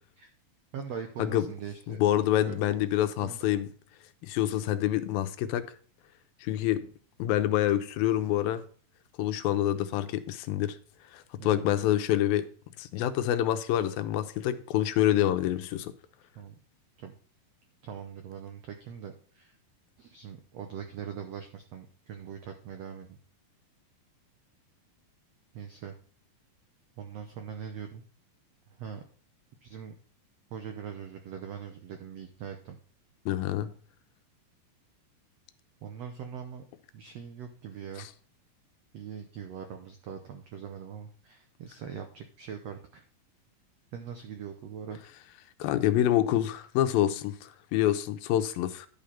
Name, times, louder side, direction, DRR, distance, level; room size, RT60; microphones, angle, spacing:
voice 1, 0.7-2.0 2.5-2.6 3.2-3.4 11.4-11.7 16.3-16.5 17.0-17.1 17.8-19.5 20.0-23.1 25.5-25.9 27.0-28.0 28.8-29.0 29.6-29.9 30.5-32.8 35.8-36.6 36.9-38.1 38.9-43.0 43.9-45.0, right 7 dB, 85° right, 1.4 m, -41 dB
voice 2, 1.9-3.7 4.2-5.6 6.4-6.9 7.2-8.6 9.2-10.8 11.1-12.5 12.8-15.9 33.3-33.7 38.0-38.1 45.6-48.9, left 12 dB, 85° left, 2.5 m, -27 dB
11.0 x 5.1 x 5.6 m
omnidirectional pair, 4.2 m